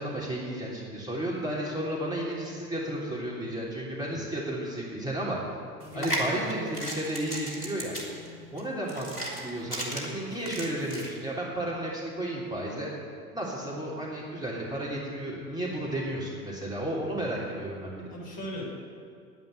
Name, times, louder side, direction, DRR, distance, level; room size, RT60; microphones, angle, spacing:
voice 1, 0.0-5.4 5.9-7.9 8.5-12.9 13.3-18.1, right 1 dB, 10° right, -5 dB, 3.2 m, -33 dB
sound 1, 5.8-11.1, right 1 dB, 90° left, 2.2 m, -35 dB
voice 2, 5.8-6.7 18.1-18.7, left 1 dB, 40° left, -2 dB, 3.9 m, -38 dB
10.0 x 9.1 x 9.3 m, 2.2 s
figure-of-eight pair, 75°, 46 cm